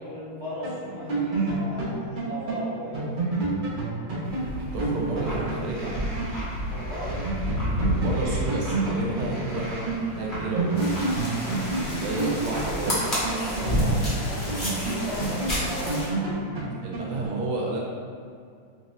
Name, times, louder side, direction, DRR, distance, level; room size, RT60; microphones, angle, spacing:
voice 1, 0.0-3.3 6.7-7.2 13.3-16.1, equal, 40° right, -12 dB, 1.2 m, -36 dB
sound 1, 0.6-6.4 6.6-6.7 7.1-10.0 10.3-14.1 14.5-17.3, right 3 dB, 60° right, 0.5 m, -29 dB
sound 2, 4.2-16.0, equal, 35° left, 0.9 m, -31 dB
voice 2, 4.6-6.2 7.9-10.9 11.8-13.0 16.8-17.8, right 2 dB, 80° right, -3 dB, 1.5 m, -31 dB
sound 3, 10.7-16.1, left 1 dB, 60° left, 0.6 m, -37 dB
4.3 x 2.8 x 3.0 m, 2.2 s
omnidirectional pair, 2.3 m